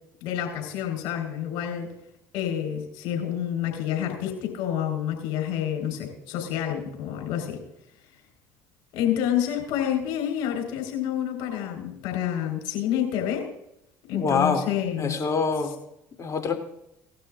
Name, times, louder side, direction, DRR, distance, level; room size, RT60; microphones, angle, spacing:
voice 1, 0.2-1.9 2.3-7.6 8.9-13.5 14.1-15.2, left 10 dB, 70° left, 3 dB, 4.3 m, -28 dB
voice 2, 14.1-14.6 15.0-15.7 16.2-16.5, left 5 dB, 35° left, 4 dB, 2.9 m, -25 dB
18.0 x 12.5 x 2.5 m, 0.79 s
hypercardioid pair, 65°, 9 cm